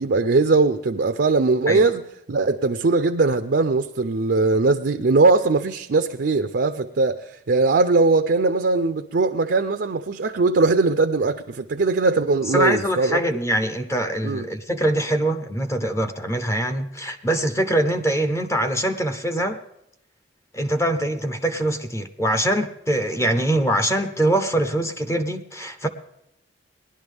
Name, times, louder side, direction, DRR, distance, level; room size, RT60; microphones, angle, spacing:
voice 1, 0.0-2.0 2.3-13.2 14.2-14.4, right 3 dB, 65° right, 0.5 m, -20 dB
voice 2, 12.5-19.6 20.5-25.9, right 1 dB, 15° left, 0.7 m, -23 dB
19.0 x 11.0 x 3.5 m
head